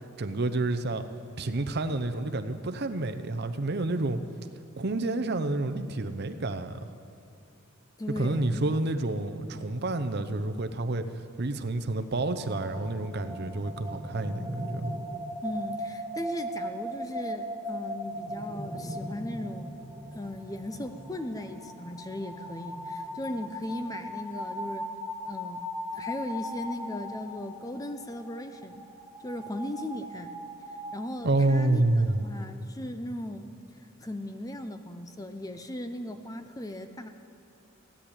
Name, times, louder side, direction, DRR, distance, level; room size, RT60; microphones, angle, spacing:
voice 1, 0.2-1.0 1.4-4.2 4.8-6.8 8.2-11.0 11.4-14.9 31.2-32.3, right 2 dB, 50° right, 8 dB, 0.7 m, -29 dB
voice 2, 8.0-8.6 15.4-19.8 20.1-24.9 25.3-25.6 25.9-28.8 29.2-30.3 30.9-31.8 32.2-33.5 34.0-37.1, left 1 dB, 15° left, 8 dB, 0.6 m, -37 dB
sound 1, 12.3-31.0, equal, ahead, 1.3 m, -38 dB
16.0 x 10.0 x 8.9 m, 2.7 s
head